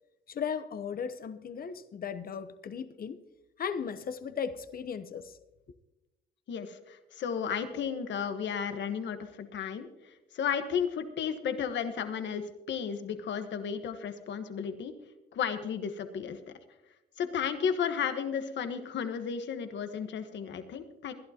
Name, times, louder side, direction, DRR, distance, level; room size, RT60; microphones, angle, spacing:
voice 1, 0.3-3.2 3.6-5.4, left 7 dB, 50° left, 0.9 m, -36 dB
voice 2, 6.5-14.9 15.3-16.4 17.2-21.1, left 7 dB, 65° left, 1.3 m, -33 dB
21.0 x 11.5 x 2.9 m
cardioid pair, 90°, 20 cm